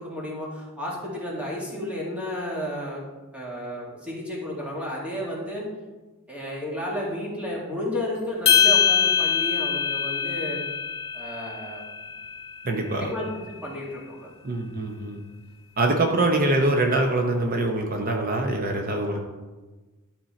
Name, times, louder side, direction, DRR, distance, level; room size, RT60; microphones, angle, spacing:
voice 1, 0.0-3.0 3.3-5.7 6.3-10.6 11.1-11.8 13.0-14.3, left 1 dB, 5° right, -4 dB, 1.9 m, -32 dB
sound 1, 8.5-12.9, left 7 dB, 25° left, 1.4 m, -23 dB
voice 2, 12.6-13.1 14.4-15.2 15.8-19.2, right 2 dB, 40° right, 3 dB, 0.8 m, -24 dB
11.5 x 4.5 x 4.3 m, 1.2 s
head